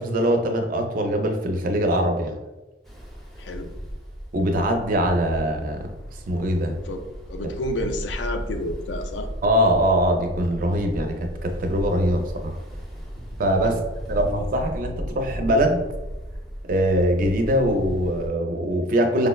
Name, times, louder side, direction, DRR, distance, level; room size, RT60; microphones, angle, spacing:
voice 1, 0.0-2.4 4.3-5.9 6.3-6.8 9.4-12.6 13.4-13.8 14.1-15.8 16.7-19.3, equal, 50° right, 5 dB, 0.4 m, -22 dB
Ocean, 2.8-18.3, equal, ahead, 0.5 m, -35 dB
voice 2, 3.4-3.7 6.9-7.0 7.3-9.3 13.6-13.9, left 1 dB, 85° left, 6 dB, 0.4 m, -30 dB
4.9 x 2.0 x 2.2 m, 1.1 s
head